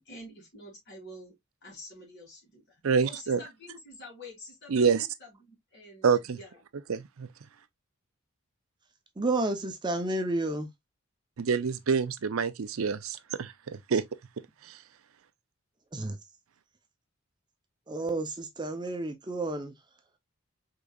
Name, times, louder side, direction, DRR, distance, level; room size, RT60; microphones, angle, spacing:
voice 1, 0.0-1.3 1.6-6.6, left 1 dB, 55° left, 3.1 m, -48 dB
voice 2, 2.8-3.4 4.7-5.1 6.0-6.4 6.9-7.3 11.4-14.0 14.6-14.8, right 5 dB, 90° right, 0.5 m, -27 dB
voice 3, 9.2-10.7 15.9-16.2 17.9-19.7, right 2 dB, 20° right, 0.6 m, -31 dB
5.1 x 3.7 x 2.3 m
head